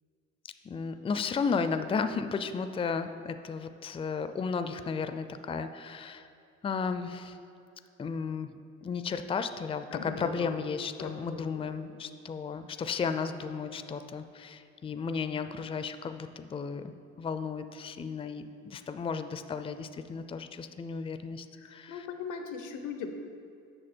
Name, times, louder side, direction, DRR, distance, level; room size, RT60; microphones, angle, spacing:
voice 1, 0.7-6.3 6.6-7.4 8.0-8.5 8.8-21.5 21.7-22.1, left 5 dB, 20° left, 10 dB, 0.4 m, -34 dB
voice 2, 9.9-10.6 11.0-11.9 21.5-23.1, left 6 dB, 90° left, 6 dB, 0.8 m, -40 dB
7.7 x 6.3 x 4.4 m, 2.5 s
cardioid pair, 90°, 30 cm